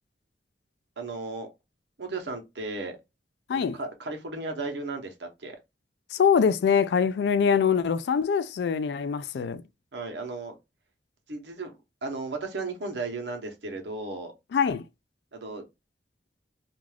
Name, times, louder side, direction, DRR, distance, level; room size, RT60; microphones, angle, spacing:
voice 1, 1.0-1.5 2.0-3.0 3.5-5.6 9.9-10.6 11.3-11.7 12.0-14.3 15.3-15.6, right 3 dB, 80° right, 0.8 m, -35 dB
voice 2, 6.1-9.6 14.5-14.8, left 6 dB, 70° left, 0.3 m, -23 dB
2.5 x 2.3 x 3.2 m
head